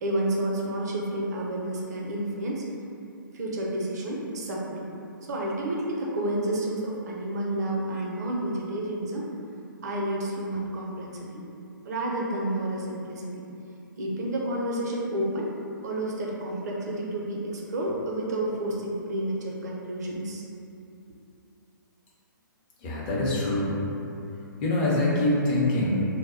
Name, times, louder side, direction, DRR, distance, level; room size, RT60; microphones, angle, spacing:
voice 1, 0.0-2.6 3.3-4.9 5.3-9.3 9.8-11.4 11.8-13.4 14.0-15.5 15.8-20.4, right 1 dB, 50° right, -3 dB, 0.5 m, -30 dB
voice 2, 22.8-23.7 24.6-26.1, left 1 dB, 30° left, -6 dB, 0.6 m, -24 dB
2.1 x 2.0 x 3.7 m, 2.7 s
figure-of-eight pair, 125°, 11 cm